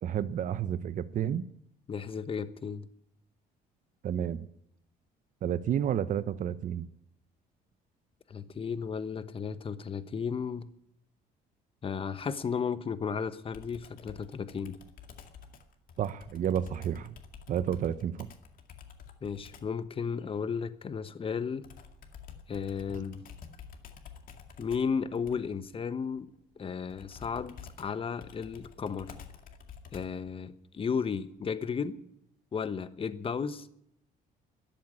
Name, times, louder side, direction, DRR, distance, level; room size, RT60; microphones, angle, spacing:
voice 1, 0.0-1.4 4.0-4.5 5.4-6.9 16.0-17.1 17.5-18.3, right 9 dB, 50° right, 14 dB, 0.8 m, -31 dB
voice 2, 1.9-2.8 8.3-10.7 11.8-14.8 19.2-21.6 22.5-23.2 24.6-26.3 26.6-29.1 29.9-32.0 32.5-33.7, left 6 dB, 35° left, 13 dB, 1.1 m, -34 dB
Computer keyboard, 13.5-19.8 21.6-30.3, left 7 dB, 55° left, 2.2 m, -50 dB
13.5 x 10.5 x 9.7 m, 0.75 s
cardioid pair, 110°, 17 cm